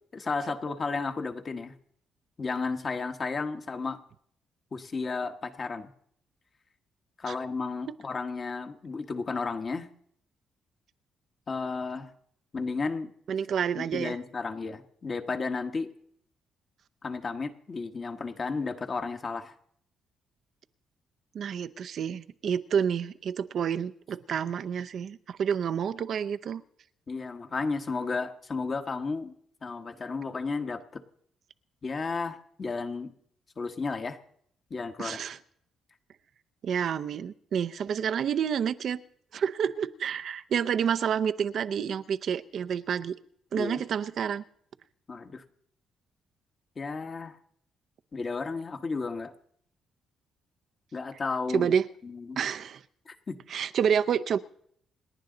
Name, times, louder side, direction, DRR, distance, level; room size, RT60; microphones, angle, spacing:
voice 1, 0.1-1.7 2.4-4.0 4.7-5.9 7.2-9.9 11.5-12.1 12.5-13.1 13.8-15.9 17.0-19.5 27.1-29.3 29.6-31.0 31.8-33.1 33.6-34.2 34.7-35.2 43.6-43.8 45.1-45.4 46.8-47.4 48.1-49.3 50.9-51.7 52.0-52.4 53.1-53.4, left 4 dB, 40° left, 1.3 m, -33 dB
voice 2, 13.3-14.2 21.3-26.6 35.0-35.4 36.6-39.0 39.3-43.2 43.5-44.4 51.5-51.9 52.4-52.8 53.5-54.4, right 7 dB, 60° right, 0.6 m, -29 dB
28.0 x 10.5 x 3.9 m
cardioid pair, 90°, 0 cm